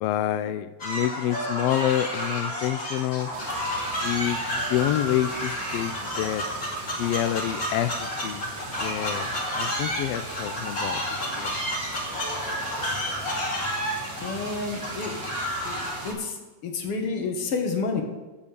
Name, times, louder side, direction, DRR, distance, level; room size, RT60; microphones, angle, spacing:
voice 1, 0.0-3.3 4.0-6.5 7.0-8.4 8.8-11.0 11.4-11.5, left 12 dB, 90° left, 12 dB, 1.4 m, -28 dB
sound 1, 0.8-16.1, equal, 30° left, 2.6 m, -31 dB
sound 2, 3.3-16.1, right 2 dB, 45° right, 2.0 m, -40 dB
voice 2, 14.2-15.2 15.6-18.0, left 4 dB, 55° left, 3 dB, 2.2 m, -30 dB
15.5 x 5.4 x 6.7 m, 1.2 s
omnidirectional pair, 3.4 m